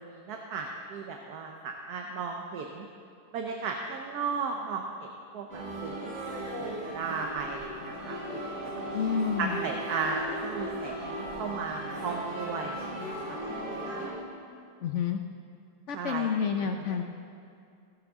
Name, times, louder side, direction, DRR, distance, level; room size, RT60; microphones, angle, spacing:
voice 1, 0.0-2.9 3.3-6.1 6.6-8.4 9.4-13.4 15.9-16.3 16.9-17.0, right 5 dB, 70° right, 2 dB, 1.3 m, -35 dB
sound 1, 5.5-14.1, right 1 dB, 50° right, 4.6 m, -37 dB
voice 2, 8.9-9.6 14.8-15.2 15.9-17.0, left 7 dB, 60° left, 4 dB, 0.8 m, -29 dB
16.5 x 14.0 x 3.6 m, 2.4 s
omnidirectional pair, 1.8 m